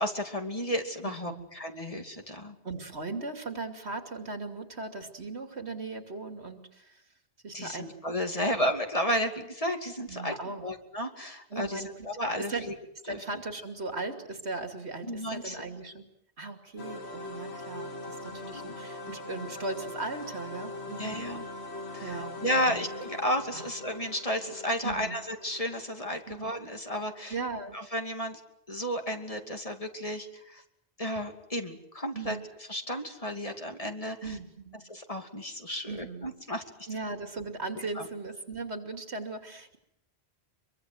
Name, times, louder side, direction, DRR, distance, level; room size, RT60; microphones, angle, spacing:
voice 1, 0.0-2.6 7.5-10.3 10.6-12.7 13.1-13.2 15.0-15.6 21.0-21.4 21.9-27.3 27.7-28.4 28.7-30.6 31.0-32.4 32.7-34.3 34.9-36.6 37.9-38.1, equal, 35° left, 4 dB, 2.8 m, -32 dB
voice 2, 1.0-1.4 2.6-7.0 7.4-7.8 10.1-10.6 11.5-11.9 12.4-12.7 13.0-16.1 16.4-21.3 22.0-22.9 23.5-23.7 24.8-25.2 26.3-26.5 27.3-27.8 32.1-32.4 34.2-34.8 35.9-36.3 36.9-39.8, right 3 dB, 85° right, 6 dB, 3.0 m, -38 dB
sound 1, 16.8-27.4, left 2 dB, 80° left, 2.1 m, -42 dB
25.0 x 23.0 x 7.9 m, 0.76 s
omnidirectional pair, 1.1 m